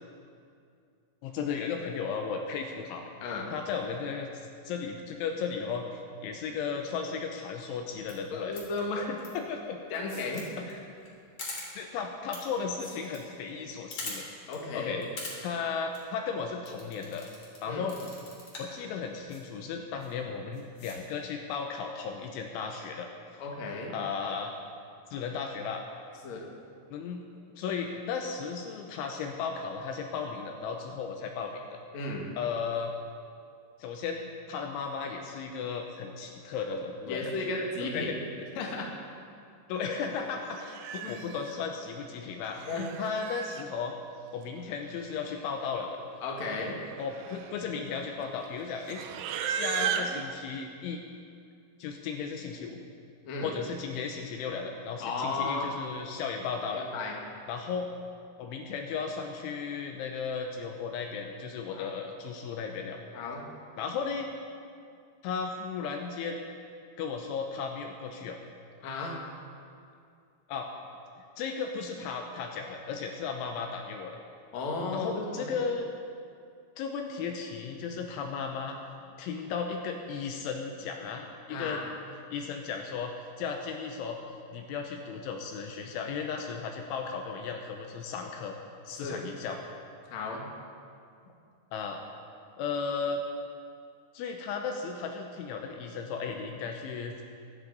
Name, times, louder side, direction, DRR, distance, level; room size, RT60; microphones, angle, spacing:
voice 1, 1.2-3.1 3.5-4.3 4.6-8.6 9.0-9.8 10.4-10.7 11.8-14.3 14.7-15.1 15.4-17.3 17.6-18.0 18.6-23.4 23.9-24.5 25.1-25.8 26.9-27.2 27.6-31.6 32.4-32.9 33.8-37.2 37.5-37.7 37.9-38.2 39.7-42.6 43.0-44.0 44.3-46.0 47.0-51.0 51.8-52.8 53.4-56.9 57.5-57.9 58.4-63.0 63.8-64.3 65.2-66.5 67.0-68.4 70.5-70.7 71.2-74.2 74.9-76.0 76.8-78.8 79.2-81.8 82.3-84.2 84.5-88.6 88.9-89.6 91.7-92.0 92.6-93.2 94.1-97.2, left 5 dB, 80° left, 3 dB, 3.0 m, -35 dB
voice 2, 3.2-3.5 8.3-9.1 9.9-10.8 14.5-14.9 17.7-17.9 23.4-23.9 26.2-26.5 31.9-32.3 37.1-38.1 38.6-38.9 39.7-39.9 41.0-41.1 42.7-42.9 46.2-46.8 53.2-53.5 55.0-55.7 56.7-57.2 61.7-61.9 63.1-63.4 68.8-69.2 74.5-75.6 81.5-81.8 89.0-89.2 90.1-90.4, left 3 dB, 55° left, -1 dB, 2.0 m, -34 dB
sound 1, 8.0-8.1 8.5-8.8 9.2-9.3 9.9-10.4 10.7-10.8 11.0-11.1 11.4-11.7 12.3-12.4 12.7-13.2 13.5-13.6 13.9-14.1 14.5-14.6 15.0-15.3 15.7-16.0 16.7-17.6 17.9-18.7 19.3-19.4 20.0-20.1 20.5-21.0, left 2 dB, 30° left, 2.7 m, -41 dB
Livestock farm animals working animals, 40.0-40.2 40.6-41.5 42.4-43.7 44.7-44.8 45.0-45.4 45.7-46.0 46.6-50.2, right 8 dB, 80° right, 3.0 m, -36 dB
23.0 x 11.0 x 4.0 m, 2.4 s
omnidirectional pair, 5.9 m